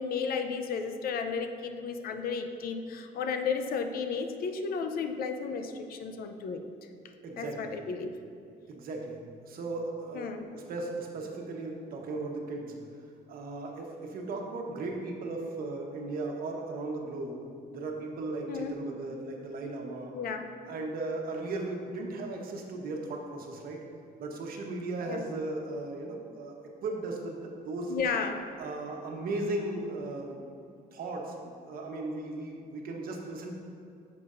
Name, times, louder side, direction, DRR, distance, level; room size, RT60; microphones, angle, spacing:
voice 1, 0.0-6.6 7.4-8.2 10.1-10.5 18.5-18.8 20.1-20.5 25.1-25.2 27.9-28.5, left 5 dB, 60° left, 6 dB, 0.6 m, -33 dB
voice 2, 7.2-7.7 8.7-12.8 13.3-20.1 20.7-23.8 24.2-26.5 26.8-27.9 28.6-30.4 30.9-33.5, right 2 dB, 60° right, 1 dB, 1.1 m, -36 dB
9.6 x 6.7 x 2.6 m, 2.5 s
cardioid pair, 110°, 17 cm